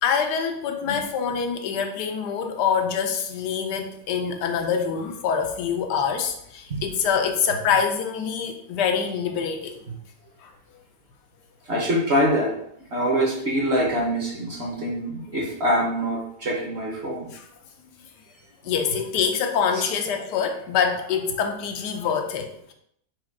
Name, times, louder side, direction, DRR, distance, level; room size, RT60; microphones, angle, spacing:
voice 1, 0.0-9.8 10.4-10.5 17.3-17.4 18.6-22.7, left 7 dB, 85° left, 5 dB, 1.2 m, -25 dB
voice 2, 11.7-12.5 12.9-17.3, equal, 45° right, -2 dB, 0.9 m, -24 dB
4.8 x 2.3 x 4.6 m, 0.72 s
omnidirectional pair, 1.8 m